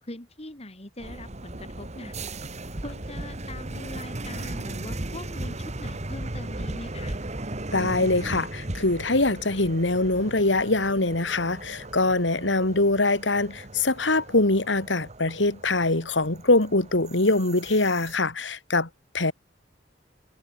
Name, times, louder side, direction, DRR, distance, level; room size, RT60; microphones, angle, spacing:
voice 1, 0.0-2.1 2.5-7.2, left 1 dB, 35° left, 3.6 m, -42 dB
sound 1, 1.0-18.1, right 1 dB, 40° right, 2.0 m, -37 dB
voice 2, 7.7-18.9 19.1-19.3, left 2 dB, 75° left, 2.7 m, -23 dB
head